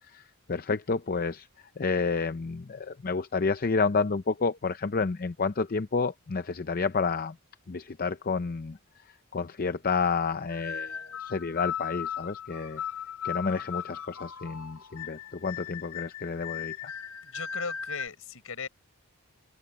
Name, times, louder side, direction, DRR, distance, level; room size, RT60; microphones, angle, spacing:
voice 1, 0.0-1.5 1.8-7.4 7.7-8.8 9.1-12.8 13.2-16.9, left 4 dB, 40° left, 0.6 m, -30 dB
sound 1, 10.5-18.1, left 8 dB, 85° left, 5.4 m, -37 dB
voice 2, 17.2-18.7, left 5 dB, 65° left, 6.6 m, -37 dB
open air
head